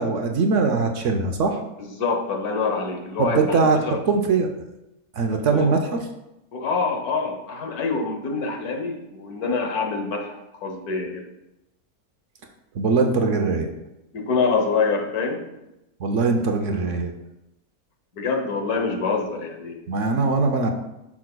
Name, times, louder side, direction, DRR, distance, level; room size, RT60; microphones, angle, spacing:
voice 1, 0.0-1.6 3.2-3.8 4.1-4.5 5.1-5.8 12.7-13.7 16.0-17.1 19.9-20.7, right 4 dB, 60° right, 4 dB, 0.9 m, -21 dB
voice 2, 1.8-4.0 5.3-5.7 6.5-11.3 14.1-15.4 18.1-19.8, left 4 dB, 80° left, 3 dB, 1.5 m, -26 dB
10.5 x 6.1 x 2.2 m, 0.92 s
omnidirectional pair, 1.6 m